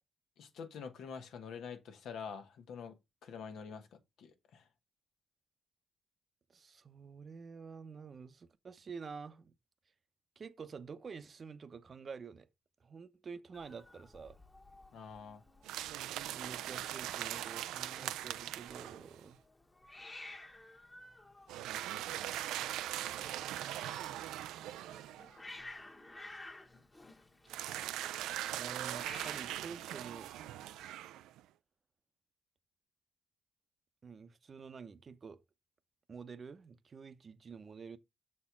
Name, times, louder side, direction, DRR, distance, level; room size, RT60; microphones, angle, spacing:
voice 1, 0.4-4.7 14.9-15.4, left 6 dB, 75° left, 1.3 m, -47 dB
voice 2, 6.5-9.5 10.4-12.5 12.8-14.4 16.3-19.4 22.5-23.8 28.5-30.3 34.0-35.4 36.1-38.0, right 5 dB, 40° right, 0.7 m, -49 dB
Hiss, 13.5-30.9, left 2 dB, 20° left, 1.3 m, -55 dB
sound 1, 15.6-19.2 21.5-25.4 27.5-31.4, right 13 dB, 90° right, 0.3 m, -40 dB
6.4 x 4.3 x 5.8 m
cardioid pair, 90°, 0 cm